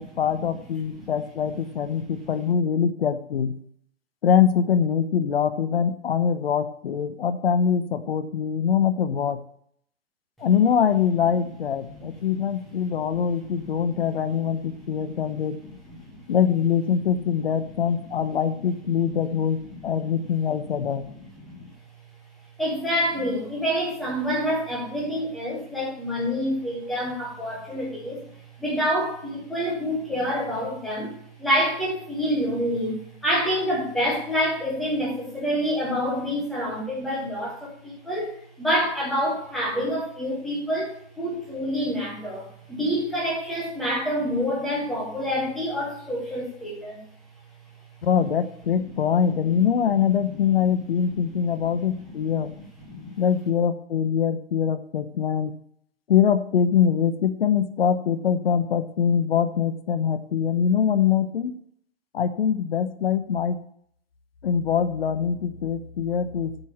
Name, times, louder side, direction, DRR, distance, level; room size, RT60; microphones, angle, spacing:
voice 1, 0.0-3.5 4.2-9.4 10.4-15.6 16.3-21.1 48.0-52.5 53.2-55.5 56.1-61.6 62.1-63.6 64.4-66.7, left 7 dB, 55° left, 11 dB, 0.9 m, -23 dB
voice 2, 12.9-14.0 14.4-15.3 15.6-16.2 17.9-18.0 19.6-20.1 20.7-21.6 22.6-28.2 28.6-47.0 49.0-49.1 49.4-49.5 51.1-51.4 52.0-52.6 52.9-53.1, equal, ahead, -5 dB, 0.5 m, -28 dB
8.1 x 6.8 x 7.1 m, 0.64 s
hypercardioid pair, 170°, 35 cm